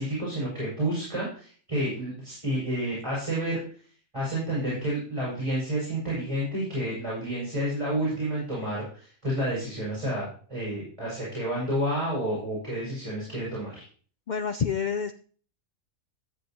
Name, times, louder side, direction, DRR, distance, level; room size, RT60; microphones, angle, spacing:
voice 1, 0.0-3.6 4.1-13.8, right 1 dB, 20° right, -7 dB, 5.3 m, -30 dB
voice 2, 14.3-15.1, left 6 dB, 90° left, 9 dB, 0.4 m, -28 dB
13.0 x 7.8 x 2.9 m, 0.42 s
omnidirectional pair, 1.4 m